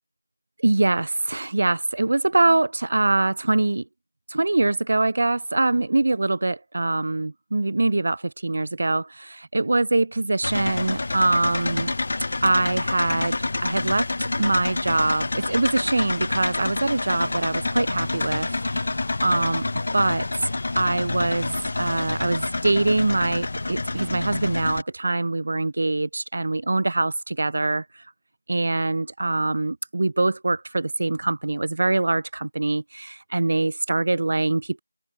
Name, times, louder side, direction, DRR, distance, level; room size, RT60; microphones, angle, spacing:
voice 1, 0.6-3.9 4.3-11.9 12.4-19.7 19.9-28.0 28.5-34.8, right 2 dB, 40° right, 3.5 m, -24 dB
sound 1, 10.4-24.8, left 2 dB, 35° left, 1.6 m, -28 dB
open air
figure-of-eight pair, 170°, 0 cm